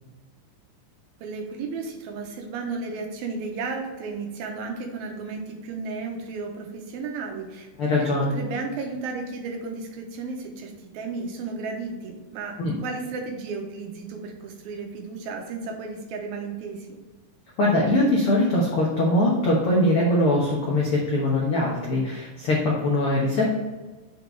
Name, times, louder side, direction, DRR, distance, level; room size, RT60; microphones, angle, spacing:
voice 1, 1.2-7.7 8.0-17.0, right 4 dB, 85° right, 3 dB, 2.8 m, -34 dB
voice 2, 7.8-8.3 12.6-12.8 17.6-23.5, left 1 dB, 75° left, -4 dB, 1.2 m, -22 dB
6.6 x 4.1 x 4.6 m, 1.3 s
omnidirectional pair, 4.2 m